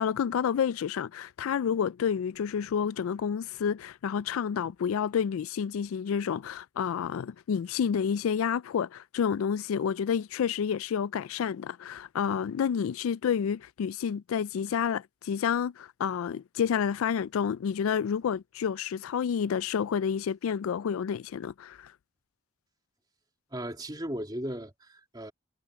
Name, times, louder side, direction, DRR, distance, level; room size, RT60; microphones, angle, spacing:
voice 1, 0.0-21.9, left 7 dB, 90° left, 0.3 m, -29 dB
voice 2, 23.5-25.3, equal, 20° right, 3.0 m, -36 dB
head